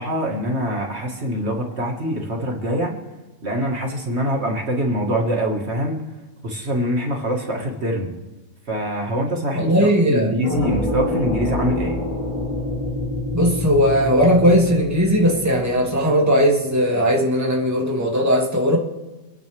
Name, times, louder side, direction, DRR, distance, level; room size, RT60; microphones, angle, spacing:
voice 1, 0.0-2.9 3.4-6.0 6.4-8.1 8.7-9.7 10.1-12.0, equal, 55° right, 2.1 m, -24 dB
voice 2, 9.6-10.3 13.3-18.8, equal, 10° right, 2.3 m, -18 dB
sound 1, 10.4-16.3, left 1 dB, 35° left, 2.5 m, -27 dB
27.0 x 10.0 x 3.5 m
omnidirectional pair, 1.4 m